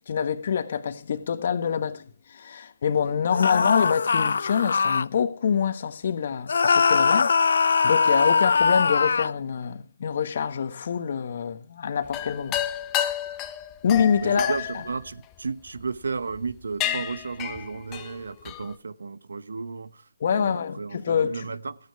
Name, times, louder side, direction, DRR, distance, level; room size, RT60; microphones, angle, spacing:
voice 1, 0.1-2.0 2.3-12.6 13.8-14.6 20.2-21.5, left 7 dB, 50° left, 1.4 m, -26 dB
sound 1, 3.3-5.1 6.5-9.3, left 5 dB, 70° left, 0.5 m, -21 dB
sound 2, 12.0-15.8 16.3-16.5 16.8-18.7, left 11 dB, 20° left, 1.1 m, -31 dB
voice 2, 14.2-21.8, right 4 dB, 80° right, 0.9 m, -34 dB
14.5 x 9.7 x 4.7 m
hypercardioid pair, 160°, 0 cm